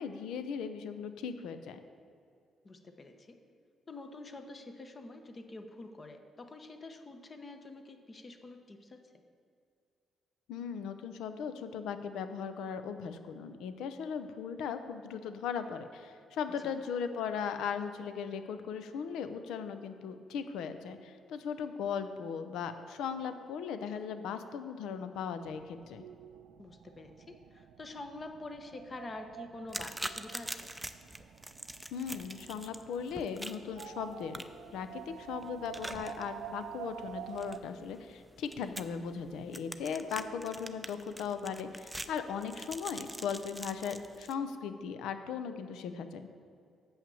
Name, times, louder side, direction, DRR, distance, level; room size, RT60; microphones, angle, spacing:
voice 1, 0.0-1.8 10.5-26.0 31.9-34.4 34.7-46.3, left 6 dB, 85° left, 9 dB, 0.6 m, -38 dB
voice 2, 2.6-3.4 3.9-9.0 16.6-16.7 26.6-30.6 40.1-40.2, left 2 dB, 35° left, 6 dB, 0.9 m, -47 dB
sound 1, 25.5-37.6, right 10 dB, 85° right, 0.3 m, -48 dB
sound 2, 29.7-44.3, right 1 dB, 5° right, 0.4 m, -45 dB
7.3 x 5.7 x 7.0 m, 2.4 s
cardioid pair, 90°, 0 cm